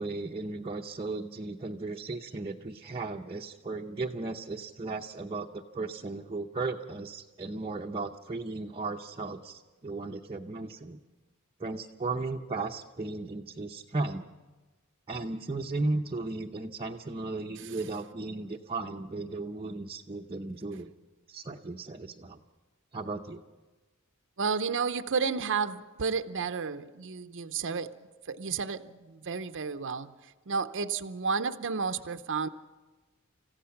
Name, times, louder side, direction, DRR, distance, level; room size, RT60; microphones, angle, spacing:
voice 1, 0.0-11.0 11.6-14.3 15.1-20.9 21.3-22.4 22.9-23.4, right 3 dB, 25° right, -1 dB, 0.7 m, -35 dB
voice 2, 24.4-27.9 28.3-30.1 30.5-32.5, right 5 dB, 60° right, 9 dB, 0.7 m, -31 dB
29.0 x 15.5 x 5.9 m, 1.2 s
head